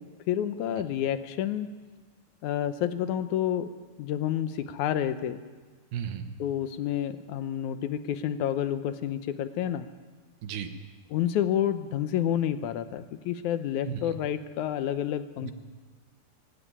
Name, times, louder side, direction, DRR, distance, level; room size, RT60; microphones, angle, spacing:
voice 1, 0.0-1.7 2.4-3.7 4.0-5.4 6.4-9.9 11.1-15.5, left 10 dB, 75° left, 11 dB, 1.9 m, -29 dB
voice 2, 5.9-6.3 10.4-10.7 13.9-14.0 15.4-15.5, right 9 dB, 90° right, 8 dB, 3.2 m, -34 dB
24.0 x 13.5 x 9.9 m, 1.4 s
omnidirectional pair, 4.2 m